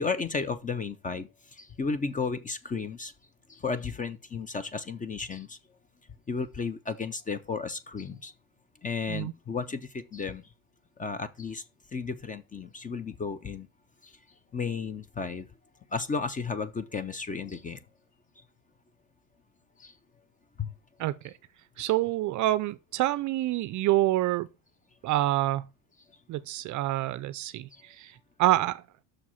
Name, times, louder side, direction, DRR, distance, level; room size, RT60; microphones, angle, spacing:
voice 1, 0.0-3.1 3.5-5.6 6.3-8.3 8.8-10.5 11.0-11.6 11.9-13.7 14.0-14.1 14.5-15.5 15.9-17.8 19.8-19.9 20.6-20.7 21.8-21.9 27.7-27.8, left 4 dB, 20° left, 0.5 m, -33 dB
voice 2, 21.0-21.3 21.8-24.5 25.0-25.7 26.3-28.8, right 15 dB, 40° right, 0.5 m, -27 dB
6.4 x 4.7 x 5.5 m
supercardioid pair, 120°, 46 cm